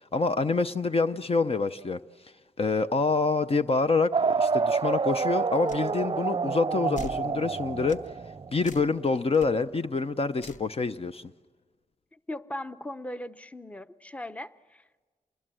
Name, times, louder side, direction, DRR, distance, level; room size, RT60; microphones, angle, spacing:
voice 1, 0.1-2.0 2.6-8.0 8.5-11.3, left 4 dB, 40° left, 10 dB, 0.7 m, -26 dB
sound 1, 4.1-8.7, right 5 dB, 35° right, 0.6 m, -28 dB
sound 2, 5.7-5.9 7.0-7.2 7.9-8.1 8.6-8.9 9.3-9.5 10.4-10.7, left 3 dB, 60° left, 1.1 m, -42 dB
voice 2, 12.1-15.1, left 1 dB, 10° left, 12 dB, 0.8 m, -39 dB
27.0 x 20.5 x 7.7 m, 1.3 s
cardioid pair, 60°, 15 cm